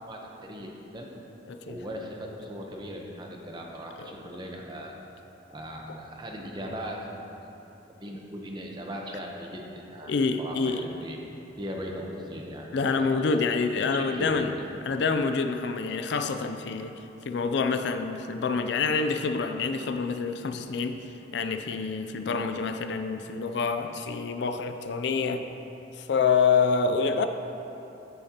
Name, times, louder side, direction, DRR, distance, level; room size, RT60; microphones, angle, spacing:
voice 1, 0.1-1.1 1.6-4.9 5.5-7.2 7.9-10.1 10.4-11.2 11.6-13.4 13.9-14.6, equal, 20° right, 0 dB, 0.8 m, -38 dB
voice 2, 1.5-1.8 4.0-4.1 10.1-10.8 12.7-14.5 14.9-21.0 21.3-25.5 25.9-27.3, left 5 dB, 60° left, 8 dB, 0.4 m, -27 dB
13.5 x 6.5 x 2.8 m, 3.0 s
head